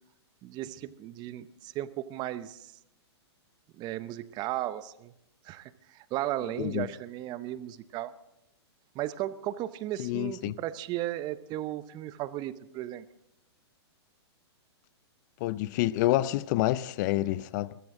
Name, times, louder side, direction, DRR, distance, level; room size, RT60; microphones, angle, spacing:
voice 1, 0.4-2.7 3.7-5.1 5.4-8.1 8.9-13.0, right 14 dB, 30° right, 0.7 m, -35 dB
voice 2, 10.0-10.6 15.4-17.8, left 15 dB, 40° left, 0.4 m, -28 dB
20.5 x 14.0 x 3.7 m
hypercardioid pair, 135°, 14 cm